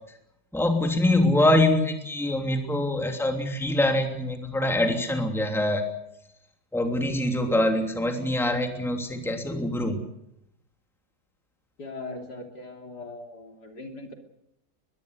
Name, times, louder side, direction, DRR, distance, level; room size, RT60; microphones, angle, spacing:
voice 1, 0.5-5.9 6.7-10.0, left 1 dB, ahead, 3 dB, 2.9 m, -24 dB
voice 2, 11.8-14.1, left 2 dB, 55° left, 3 dB, 3.7 m, -40 dB
23.5 x 21.5 x 6.7 m, 0.79 s
omnidirectional pair, 2.1 m